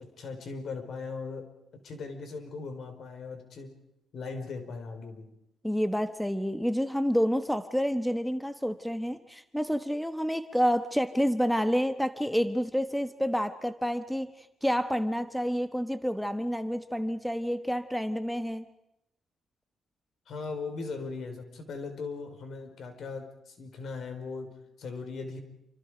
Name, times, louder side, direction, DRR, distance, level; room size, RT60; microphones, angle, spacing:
voice 1, 0.0-3.8 4.1-5.3 20.3-25.4, left 4 dB, 65° left, 6 dB, 5.2 m, -39 dB
voice 2, 5.6-18.7, equal, ahead, 10 dB, 1.2 m, -29 dB
28.5 x 26.0 x 5.2 m, 0.82 s
cardioid pair, 90°, 0 cm